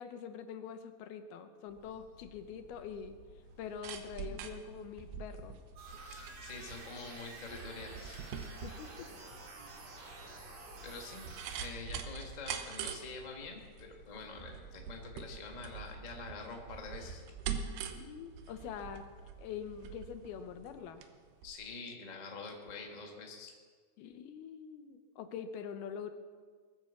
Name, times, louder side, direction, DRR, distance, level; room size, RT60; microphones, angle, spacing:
voice 1, 0.0-3.2 3.6-5.6 8.5-9.1 10.0-10.1 17.9-19.1 19.4-21.0 24.0-26.1, left 7 dB, 75° left, 8 dB, 2.7 m, -44 dB
sound 1, 1.7-20.9, left 2 dB, 55° left, 1.7 m, -59 dB
sound 2, 3.5-21.1 21.4-21.5, right 7 dB, 75° right, 3.0 m, -44 dB
sound 3, 5.8-11.7, right 3 dB, 45° right, 3.0 m, -50 dB
voice 2, 6.0-8.2 10.8-11.2 11.5-17.2 21.4-23.5, left 4 dB, 35° left, 0 dB, 0.6 m, -46 dB
21.0 x 9.0 x 7.2 m, 1.5 s
omnidirectional pair, 4.7 m